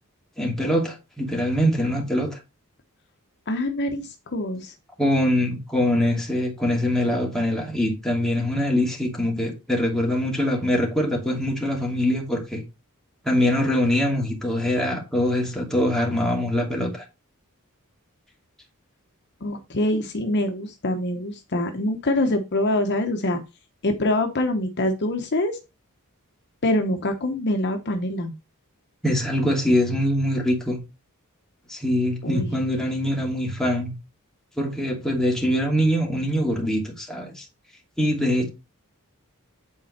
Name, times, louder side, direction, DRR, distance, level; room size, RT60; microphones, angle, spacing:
voice 1, 0.4-2.4 5.0-12.6 13.2-17.0 29.0-30.8 31.7-33.9 34.6-37.4 38.0-38.5, left 1 dB, ahead, 2.6 m, -23 dB
voice 2, 3.5-4.7 19.4-23.4 23.8-25.6 26.6-28.3 32.2-32.5, left 1 dB, 50° left, 1.0 m, -25 dB
9.1 x 4.3 x 4.3 m
head